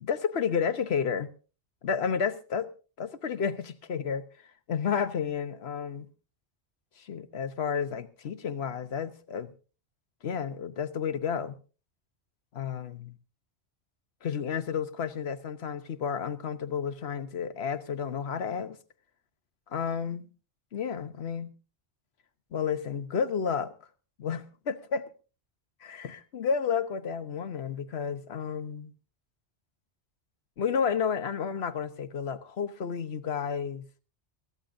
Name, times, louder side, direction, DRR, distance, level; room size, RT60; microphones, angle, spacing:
voice 1, 0.0-1.3 1.8-2.7 3.0-4.2 4.7-6.1 7.0-9.5 10.2-11.6 12.5-13.2 14.2-18.8 19.7-20.3 20.7-21.5 22.5-23.7 24.2-25.1 25.8-28.9 30.6-33.8, left 6 dB, 65° left, 1.2 m, -31 dB
23.0 x 14.5 x 2.6 m
omnidirectional pair, 1.2 m